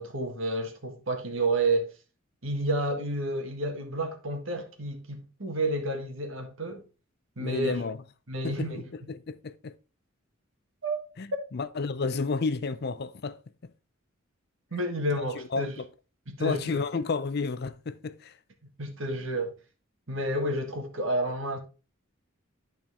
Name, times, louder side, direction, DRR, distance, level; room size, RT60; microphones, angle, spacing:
voice 1, 0.0-1.9 2.4-6.8 7.4-7.8 8.3-8.8 10.8-11.0 11.3-11.4 14.7-15.7 16.3-16.8 18.8-19.5 20.1-21.6, right 1 dB, 70° right, 1.7 m, -30 dB
voice 2, 7.4-8.0 8.4-9.8 11.2-13.7 15.1-15.9 16.4-18.4, left 4 dB, 50° left, 0.5 m, -32 dB
11.0 x 4.4 x 3.4 m
head